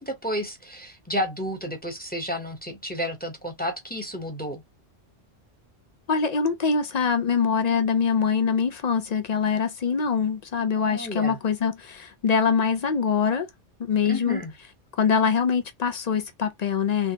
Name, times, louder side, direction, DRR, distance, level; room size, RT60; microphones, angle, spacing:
voice 1, 0.0-4.6 10.8-11.4 14.0-14.5, equal, 10° left, 0.8 m, -31 dB
voice 2, 6.1-13.5 13.8-14.4 15.0-17.1, left 6 dB, 55° left, 0.5 m, -24 dB
3.3 x 3.2 x 2.8 m
omnidirectional pair, 1.2 m